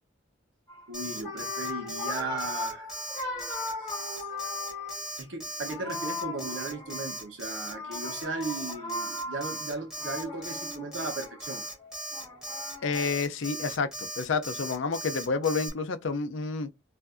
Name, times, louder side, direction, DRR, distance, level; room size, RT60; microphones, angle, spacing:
sound 1, 0.7-0.8 1.1-5.2 5.6-7.3 7.7-13.1, left 3 dB, 20° left, 1.4 m, -38 dB
Alarm, 0.9-15.7, right 1 dB, 5° right, 1.1 m, -38 dB
voice 1, 0.9-3.0 3.8-4.3 5.2-11.6, right 3 dB, 70° right, 0.9 m, -37 dB
voice 2, 12.8-16.7, left 4 dB, 70° left, 0.5 m, -29 dB
4.5 x 2.6 x 2.5 m
head